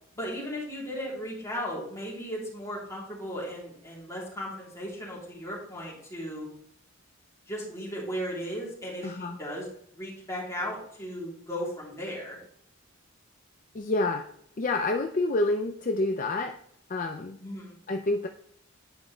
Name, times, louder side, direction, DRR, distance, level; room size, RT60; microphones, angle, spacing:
voice 1, 0.1-6.5 7.5-9.7 9.9-12.4 17.4-17.7, equal, 15° left, -6 dB, 3.0 m, -36 dB
voice 2, 9.0-9.4 13.7-14.3 14.6-16.5 16.9-17.4 17.9-18.3, left 2 dB, 40° left, 4 dB, 0.5 m, -28 dB
9.9 x 5.0 x 3.2 m, 0.67 s
head